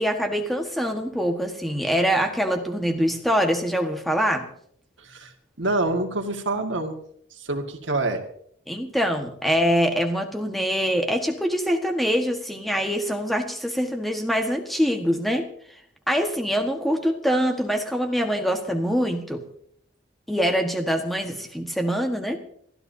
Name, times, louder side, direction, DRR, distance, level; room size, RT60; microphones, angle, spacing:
voice 1, 0.0-4.5 8.7-15.5 16.1-19.4 20.3-22.4, equal, ahead, 4 dB, 1.5 m, -24 dB
voice 2, 5.0-5.3 5.6-7.0 7.4-8.2, right 2 dB, 75° right, 4 dB, 1.9 m, -26 dB
29.0 x 13.0 x 2.8 m, 0.65 s
head